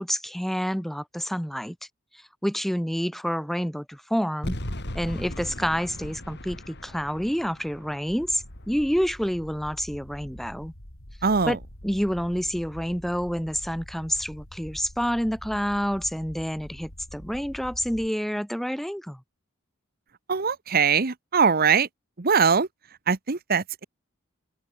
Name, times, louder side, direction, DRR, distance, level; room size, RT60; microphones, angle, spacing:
voice 1, 0.0-1.8 2.4-4.6 4.9-10.7 11.4-19.2, equal, ahead, 1.2 m, -28 dB
sound 1, 4.4-9.6, left 1 dB, 50° left, 4.3 m, -38 dB
sound 2, 8.1-18.1, equal, 65° left, 5.0 m, -45 dB
voice 2, 11.2-11.6 20.3-21.9 22.2-22.7 23.1-23.8, right 5 dB, 45° right, 0.9 m, -22 dB
open air
head